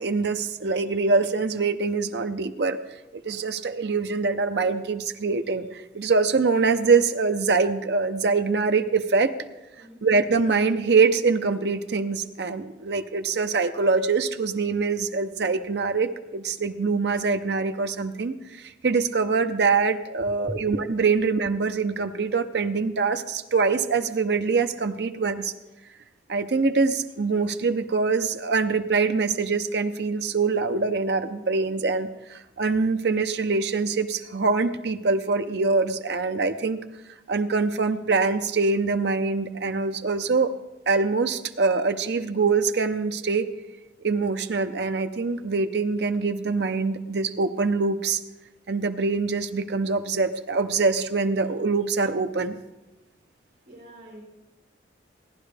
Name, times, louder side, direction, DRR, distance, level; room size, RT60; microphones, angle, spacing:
voice 1, 0.0-2.8 3.1-9.3 10.0-25.5 26.3-36.8 37.3-40.5 40.9-43.5 44.0-48.2 48.7-52.6, right 4 dB, 60° right, 8 dB, 0.6 m, -24 dB
voice 2, 53.7-54.2, equal, 40° right, -3 dB, 2.6 m, -40 dB
17.0 x 10.5 x 3.4 m, 1.0 s
head